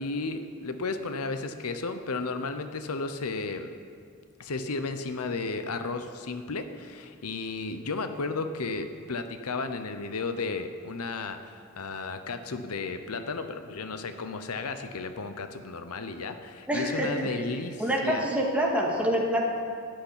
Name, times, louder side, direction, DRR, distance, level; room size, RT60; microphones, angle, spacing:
voice 1, 0.0-3.7 4.4-18.3, left 3 dB, 85° left, 8 dB, 0.8 m, -34 dB
voice 2, 16.7-17.3 17.8-19.4, equal, 5° right, -2 dB, 2.1 m, -26 dB
14.0 x 6.6 x 9.8 m, 2.2 s
head